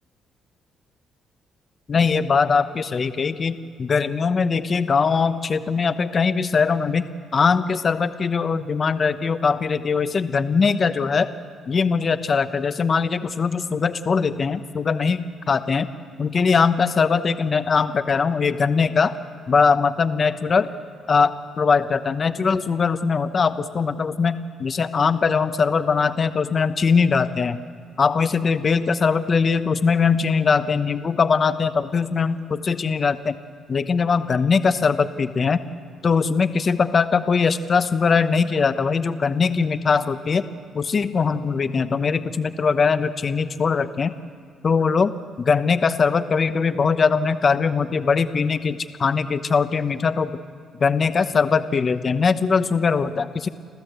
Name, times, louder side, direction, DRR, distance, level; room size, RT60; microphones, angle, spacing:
voice 1, 1.9-11.3 11.7-15.9 16.2-19.1 19.5-20.7 21.1-27.6 28.0-33.4 33.7-35.6 36.0-40.5 40.7-44.2 44.6-45.1 45.4-50.3 50.8-53.5, left 5 dB, 40° left, 11 dB, 0.9 m, -21 dB
29.0 x 13.5 x 8.0 m, 2.1 s
cardioid pair, 90°, 0 cm